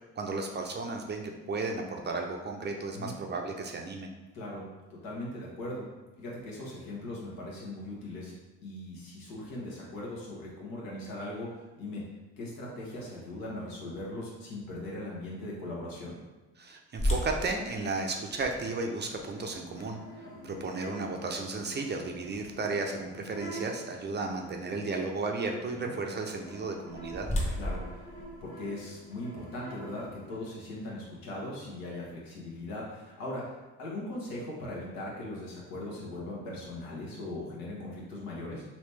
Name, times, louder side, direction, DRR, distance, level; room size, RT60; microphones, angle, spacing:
voice 1, 0.1-4.1 16.6-27.3, right 3 dB, 30° right, 3 dB, 0.5 m, -34 dB
voice 2, 4.3-4.6 5.0-5.8 6.1-8.3 8.6-12.1 12.4-16.2 25.8-25.9 27.5-27.8 28.4-33.5 33.8-38.6, left 1 dB, 75° left, -4 dB, 1.3 m, -39 dB
sound 1, 17.0-22.9 23.5-23.6 24.2-24.4 26.5-29.1, left 1 dB, 20° left, 0.9 m, -36 dB
sound 2, 18.5-30.6, right 1 dB, 35° left, 1.2 m, -48 dB
3.1 x 2.9 x 3.2 m, 1.2 s
supercardioid pair, 70°, 35 cm